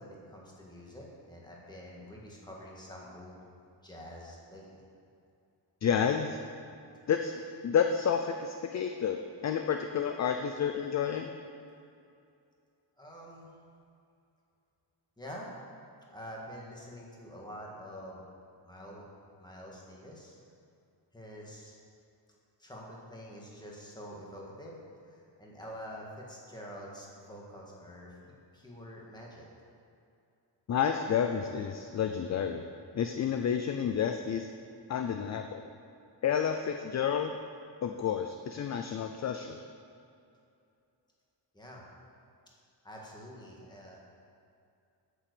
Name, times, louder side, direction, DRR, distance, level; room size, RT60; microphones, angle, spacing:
voice 1, 0.0-3.4 3.8-4.8 13.0-13.5 15.2-15.5 16.1-18.2 18.6-19.0 19.4-20.4 21.1-21.8 22.6-24.8 25.1-28.2 28.5-29.5 41.5-41.8 42.8-44.0, equal, 10° left, -3 dB, 1.7 m, -46 dB
voice 2, 5.8-6.4 7.1-11.3 30.7-32.6 32.9-34.5 34.9-35.6 36.2-37.3 37.8-39.6, left 7 dB, 40° left, 5 dB, 0.4 m, -30 dB
8.6 x 7.6 x 6.7 m, 2.5 s
wide cardioid pair, 170°, 44 cm